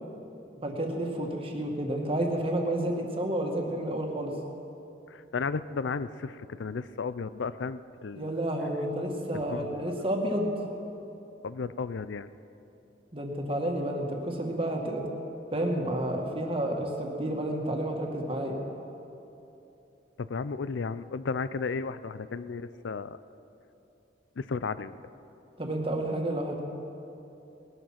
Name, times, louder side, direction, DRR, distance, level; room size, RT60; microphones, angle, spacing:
voice 1, 0.6-4.3 8.2-10.5 13.1-15.0 15.5-18.6 25.6-26.6, right 1 dB, 30° right, 1 dB, 1.9 m, -30 dB
voice 2, 5.1-8.5 9.3-9.7 11.4-12.3 20.2-23.2 24.4-25.0, left 4 dB, 80° left, 15 dB, 0.5 m, -34 dB
19.5 x 12.0 x 5.9 m, 2.9 s
head